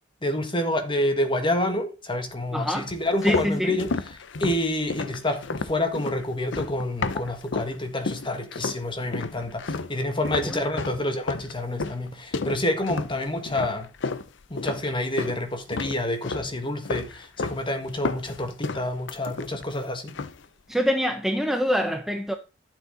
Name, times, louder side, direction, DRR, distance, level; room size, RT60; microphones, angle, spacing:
voice 1, 0.2-3.9 4.4-13.9 14.5-20.2, left 1 dB, 25° left, 1.7 m, -28 dB
voice 2, 2.5-2.9 3.2-3.8 10.3-10.6 20.7-22.4, equal, ahead, 0.7 m, -25 dB
sound 1, 2.9-7.8 8.1-8.8 9.1-15.4 15.7-16.5 16.9-17.6 17.9-19.8 20.1-20.4, left 4 dB, 65° left, 0.7 m, -32 dB
12.0 x 7.2 x 3.9 m
head